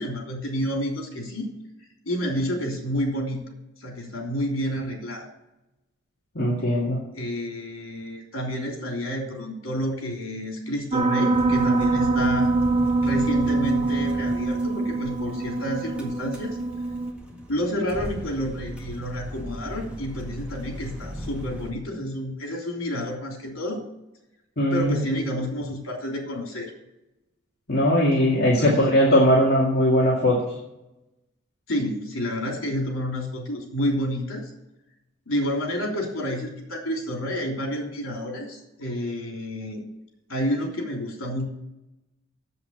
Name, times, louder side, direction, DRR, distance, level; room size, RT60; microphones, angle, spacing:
voice 1, 0.0-1.5 2.0-3.4 3.8-5.3 7.1-12.5 13.0-16.6 17.5-23.8 24.7-26.7 28.6-28.9 31.7-34.5 35.3-39.8 40.3-41.5, equal, 85° left, 1 dB, 3.3 m, -29 dB
voice 2, 6.4-7.0 24.6-25.0 27.7-30.4, equal, 55° left, -4 dB, 2.2 m, -20 dB
Piano, 10.9-17.1, right 3 dB, 30° right, 0.8 m, -24 dB
sound 1, 11.3-21.7, equal, 5° right, 1.7 m, -38 dB
7.9 x 7.7 x 7.3 m, 0.92 s
head